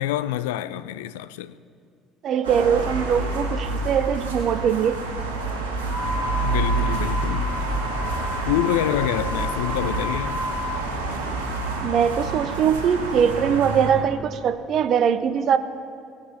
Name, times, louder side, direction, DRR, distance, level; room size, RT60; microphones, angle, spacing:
voice 1, 0.0-1.6 6.4-7.5 8.5-10.4, left 12 dB, 70° left, 0.3 m, -26 dB
voice 2, 2.2-5.0 11.8-15.6, right 8 dB, 50° right, 0.6 m, -21 dB
sound 1, 2.4-13.9, right 2 dB, 80° right, 1.5 m, -28 dB
sound 2, 5.8-10.8, left 2 dB, 10° left, 0.6 m, -32 dB
17.5 x 6.1 x 4.2 m
figure-of-eight pair, 55°, 0 cm